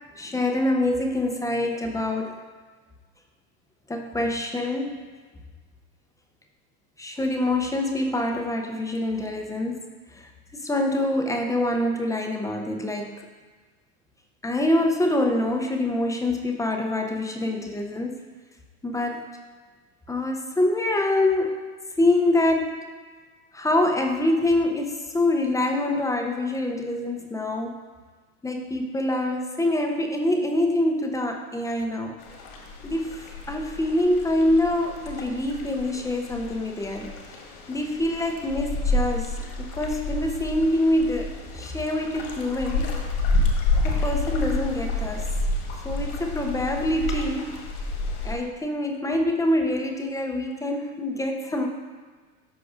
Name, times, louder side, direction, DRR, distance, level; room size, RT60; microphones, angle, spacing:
voice 1, 0.2-2.4 3.9-4.9 7.0-9.8 10.1-10.3 10.6-13.3 14.4-18.2 18.8-19.3 20.1-22.8 23.5-27.8 28.4-32.2 32.8-37.1 37.7-41.3 41.5-42.9 43.8-45.3 45.8-47.6 48.2-51.7, left 1 dB, 5° left, 2 dB, 0.5 m, -25 dB
sound 1, 32.2-48.3, left 2 dB, 65° left, 1.7 m, -29 dB
13.0 x 5.0 x 2.5 m, 1.4 s
hypercardioid pair, 110°, 46 cm